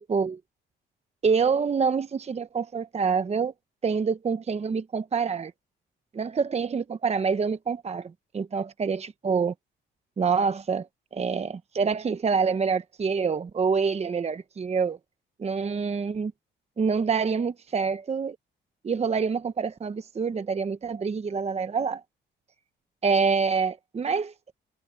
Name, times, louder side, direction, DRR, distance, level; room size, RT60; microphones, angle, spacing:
voice 1, 0.1-0.4 1.2-3.5 3.8-5.5 6.1-9.5 10.2-10.9 11.1-15.0 15.4-16.3 16.8-18.4 18.8-22.0 23.0-24.5, right 5 dB, 35° right, 0.9 m, -26 dB
cardioid pair, 90°, 20 cm